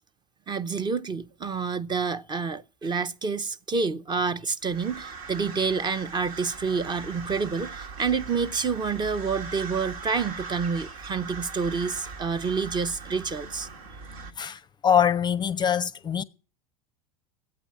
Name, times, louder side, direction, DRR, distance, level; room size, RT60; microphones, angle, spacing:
voice 1, 0.5-13.7, right 5 dB, 25° right, 0.7 m, -28 dB
sound 1, 4.6-14.3, right 4 dB, 70° right, 1.6 m, -40 dB
voice 2, 14.4-16.2, left 8 dB, 25° left, 0.6 m, -24 dB
11.5 x 8.6 x 8.8 m
figure-of-eight pair, 80°, 19 cm